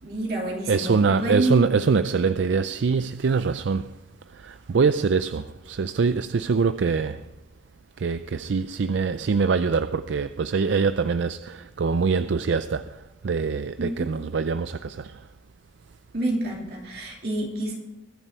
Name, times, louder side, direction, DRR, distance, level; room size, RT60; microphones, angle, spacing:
voice 1, 0.0-1.6 13.8-14.1 16.1-17.7, right 2 dB, 55° right, 3.0 m, -27 dB
voice 2, 0.7-3.9 4.3-7.2 8.0-13.0 13.2-15.1, right 5 dB, 75° right, 0.4 m, -24 dB
22.5 x 7.6 x 4.5 m
head